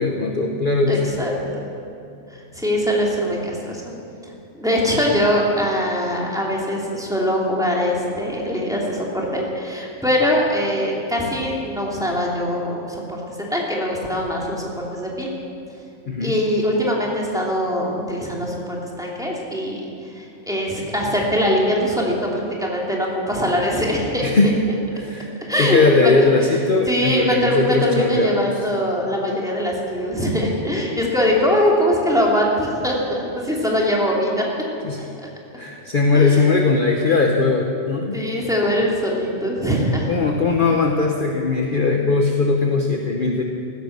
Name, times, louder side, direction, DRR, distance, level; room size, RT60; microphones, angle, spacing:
voice 1, 0.0-1.1 16.1-16.4 24.2-24.6 25.0-25.3 25.6-28.4 34.8-35.1 35.6-38.2 40.1-43.4, left 3 dB, 45° left, 2 dB, 1.1 m, -19 dB
voice 2, 0.9-1.6 2.5-3.8 4.2-13.2 13.5-15.3 16.2-19.8 20.2-24.3 25.4-26.1 26.9-34.5 36.1-36.4 38.1-40.1, equal, 5° right, -3 dB, 2.7 m, -22 dB
15.5 x 13.5 x 6.6 m, 2.7 s
omnidirectional pair, 1.4 m